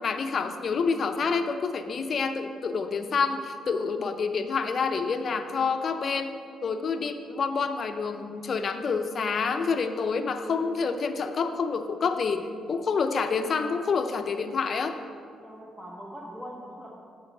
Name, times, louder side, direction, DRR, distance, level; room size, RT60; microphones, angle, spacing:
voice 1, 0.0-6.4 6.6-14.9, left 5 dB, 50° left, 8 dB, 0.6 m, -28 dB
voice 2, 15.4-16.9, equal, 5° right, -4 dB, 1.0 m, -41 dB
8.2 x 4.0 x 6.4 m, 2.3 s
cardioid pair, 90°, 0 cm